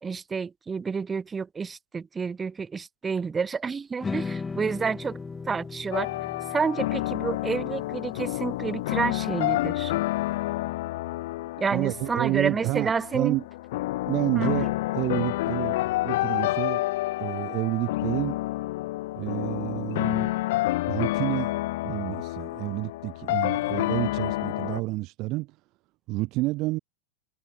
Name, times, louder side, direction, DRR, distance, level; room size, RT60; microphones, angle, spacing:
voice 1, 0.0-5.2 5.5-6.1 6.5-9.9 11.6-13.3 14.3-14.6, right 5 dB, 15° right, 1.4 m, -29 dB
sound 1, 4.0-10.3, left 4 dB, 15° left, 0.9 m, -38 dB
sound 2, 5.9-24.8, left 18 dB, 55° left, 0.4 m, -29 dB
voice 2, 11.7-13.5 14.1-16.8 17.2-18.4 19.2-20.3 20.9-21.6 21.8-25.6 26.1-26.8, right 21 dB, 40° right, 0.6 m, -29 dB
figure-of-eight pair, 90°, 0 cm